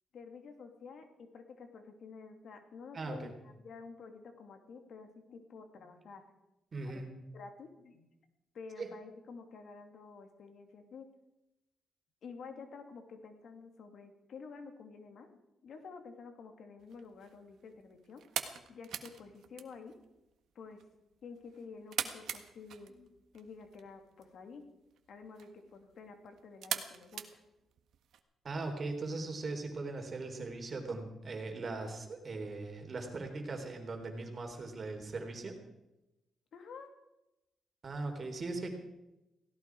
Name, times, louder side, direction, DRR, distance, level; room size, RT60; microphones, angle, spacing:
voice 1, 0.1-6.2 6.8-7.0 7.3-8.1 8.5-11.1 12.2-18.2 18.7-20.0 20.5-20.8 21.2-24.6 25.1-27.4 36.5-36.9, left 5 dB, 65° left, 6 dB, 2.7 m, -50 dB
voice 2, 2.9-3.3 6.7-7.1 8.8-8.9 28.4-35.6 37.8-38.7, right 3 dB, 40° right, 4 dB, 3.9 m, -39 dB
sound 1, 16.8-28.2, right 9 dB, 75° right, 1.5 m, -44 dB
17.0 x 17.0 x 4.8 m, 0.93 s
cardioid pair, 90°, 0 cm